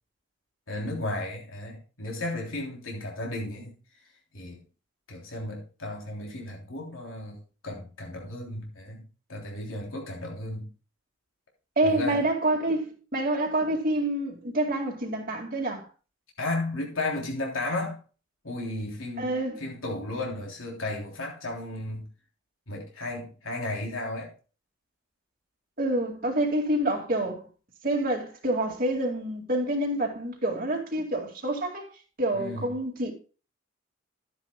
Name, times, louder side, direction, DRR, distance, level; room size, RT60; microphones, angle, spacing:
voice 1, 0.7-3.7 4.3-4.6 5.1-7.4 7.6-9.0 9.3-10.7 11.8-12.2 16.4-18.0 18.4-19.3 19.6-22.1 22.7-24.3 32.3-32.7, left 2 dB, 80° left, 3.2 m, -34 dB
voice 2, 11.8-15.9 19.2-19.6 25.8-27.4 27.8-31.9 32.2-33.1, right 1 dB, 45° right, 2.2 m, -27 dB
12.5 x 10.0 x 2.3 m
head